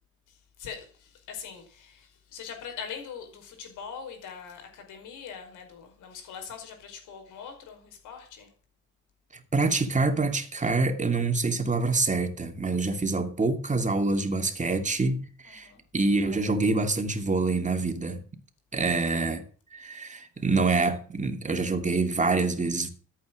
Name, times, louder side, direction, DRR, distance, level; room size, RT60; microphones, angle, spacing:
voice 1, 0.3-8.5 15.5-15.8, left 6 dB, 90° left, 5.2 m, -42 dB
voice 2, 9.3-18.2 18.7-19.5 19.7-22.9, right 3 dB, 25° right, 2.6 m, -26 dB
14.0 x 8.6 x 6.4 m
cardioid pair, 90°, 30 cm